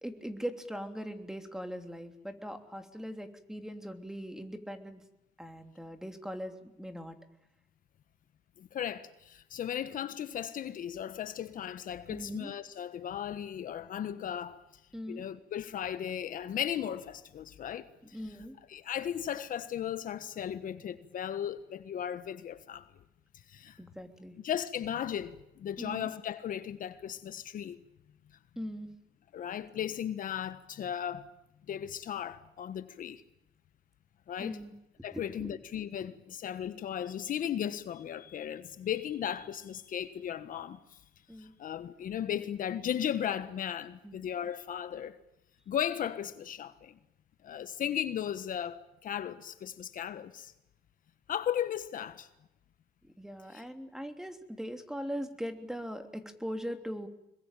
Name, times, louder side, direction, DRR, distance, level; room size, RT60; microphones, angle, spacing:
voice 1, 0.0-5.0 5.4-7.2 12.1-12.5 14.9-15.2 18.1-18.6 23.8-24.4 25.8-26.1 28.6-28.9 34.4-34.7 35.1-35.6 41.3-41.5 44.0-44.3 53.0-57.1, equal, 5° right, 3.1 m, -40 dB
voice 2, 8.6-14.6 15.1-18.2 18.7-22.9 23.5-23.8 24.4-27.8 29.3-31.3 31.7-33.2 34.3-34.6 35.0-40.8 41.4-45.2 45.7-47.0 47.4-50.5 51.3-52.3 53.5-53.6, left 9 dB, 55° left, 1.4 m, -36 dB
26.0 x 22.0 x 9.1 m
cardioid pair, 110°, 17 cm